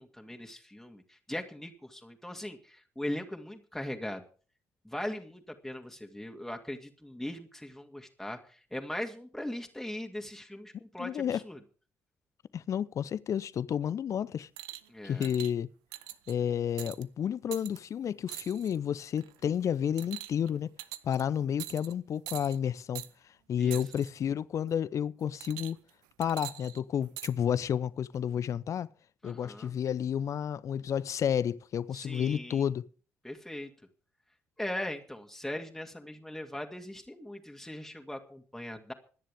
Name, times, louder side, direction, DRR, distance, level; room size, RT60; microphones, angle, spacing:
voice 1, 0.0-4.2 4.8-11.6 14.9-15.3 23.6-23.8 29.2-29.7 31.9-32.7 33.2-33.7 34.6-38.9, left 1 dB, 5° left, 2.5 m, -40 dB
voice 2, 11.0-11.4 12.5-14.5 15.0-15.7 16.3-20.7 21.0-23.0 23.5-25.8 26.2-28.9 29.2-32.8, left 9 dB, 45° left, 0.7 m, -31 dB
sound 1, 14.6-14.9 15.2-15.5 15.9-16.3 16.8-17.0 17.5-17.8 18.3-18.8 19.2-19.4 20.0-20.5 20.8-21.2 21.6-21.9 22.3-22.6 23.0-23.1 23.7-24.1 25.4-25.9 26.2-27.3 28.1-28.2, right 16 dB, 65° right, 0.7 m, -43 dB
26.0 x 10.0 x 3.6 m
figure-of-eight pair, 45°, 7 cm